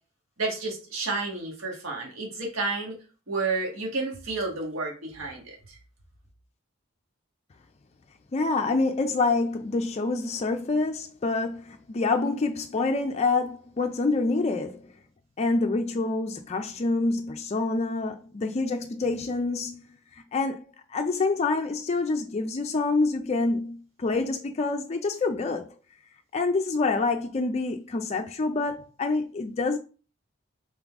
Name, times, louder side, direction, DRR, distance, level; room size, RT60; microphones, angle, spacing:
voice 1, 0.4-3.0 3.3-5.8, right 3 dB, 90° right, 1.6 m, -31 dB
voice 2, 8.3-14.9 15.4-20.6 20.9-25.7 26.3-29.8, left 3 dB, 30° left, 0.4 m, -27 dB
3.9 x 3.7 x 3.5 m
head